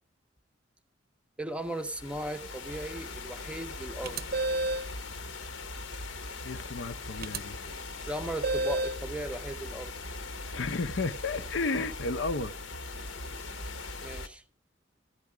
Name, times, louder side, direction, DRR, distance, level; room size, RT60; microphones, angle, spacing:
voice 1, 1.4-4.2 8.1-9.9 14.0-14.4, right 1 dB, 5° right, 0.6 m, -37 dB
sound 1, 1.6-14.3, left 3 dB, 80° left, 1.1 m, -40 dB
sound 2, 4.0-4.9 7.2-7.4 8.4-9.0, right 2 dB, 50° right, 0.6 m, -30 dB
voice 2, 6.4-7.6 10.5-12.5, left 3 dB, 65° left, 0.6 m, -32 dB
13.5 x 9.7 x 4.8 m
head